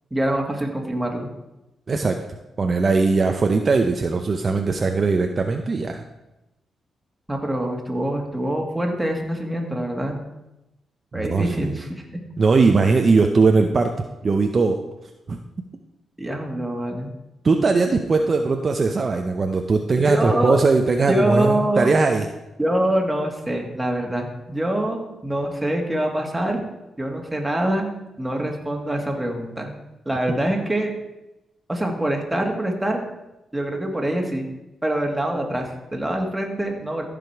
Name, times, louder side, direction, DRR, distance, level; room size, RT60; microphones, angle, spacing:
voice 1, 0.1-1.3 7.3-10.2 11.1-11.9 16.2-17.1 20.0-20.6 21.1-21.9 22.6-26.6 27.0-27.9 28.2-29.7 30.1-30.9 31.7-33.0 33.5-34.5 34.8-37.1, right 1 dB, 10° right, 1 dB, 2.1 m, -24 dB
voice 2, 1.9-2.2 2.6-6.0 11.1-11.8 12.4-14.8 15.3-15.4 17.4-22.3, right 4 dB, 45° right, 4 dB, 0.7 m, -20 dB
14.5 x 5.1 x 4.7 m, 0.96 s
cardioid pair, 70°, 0 cm